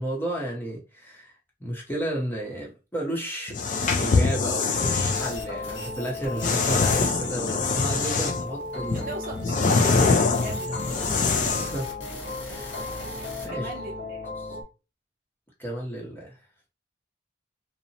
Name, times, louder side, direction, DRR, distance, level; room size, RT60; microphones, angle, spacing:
voice 1, 0.0-3.6 4.0-9.1 11.4-11.9 12.4-12.8 13.4-13.7 14.4-14.6 15.6-16.4, right 1 dB, 10° left, 0.7 m, -32 dB
sound 1, 3.5-5.3 6.4-8.5 8.9-11.8, left 4 dB, 45° left, 0.3 m, -24 dB
sound 2, 4.8-14.6, left 2 dB, 65° left, 1.2 m, -35 dB
sound 3, 5.1-13.5, left 2 dB, 80° left, 0.7 m, -41 dB
voice 2, 8.9-11.0 13.5-14.3, right 2 dB, 50° right, 0.5 m, -39 dB
2.8 x 2.0 x 2.7 m
head